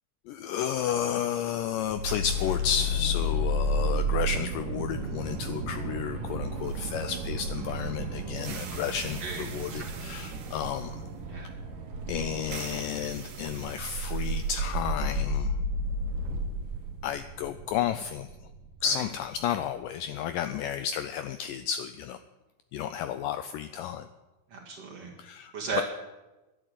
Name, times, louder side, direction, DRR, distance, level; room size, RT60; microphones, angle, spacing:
voice 1, 0.3-11.0 11.3-11.5 12.1-15.6 17.0-18.3 18.8-22.2 22.7-24.1 25.2-25.8, left 9 dB, 85° left, 10 dB, 1.9 m, -32 dB
sound 1, 1.9-20.0, equal, 65° right, 2.8 m, -32 dB
voice 2, 9.2-9.9 11.3-11.6 18.8-19.0 24.5-25.1 25.5-25.8, right 5 dB, 45° right, -1 dB, 2.5 m, -36 dB
11.5 x 10.0 x 8.0 m, 1.1 s
omnidirectional pair, 4.4 m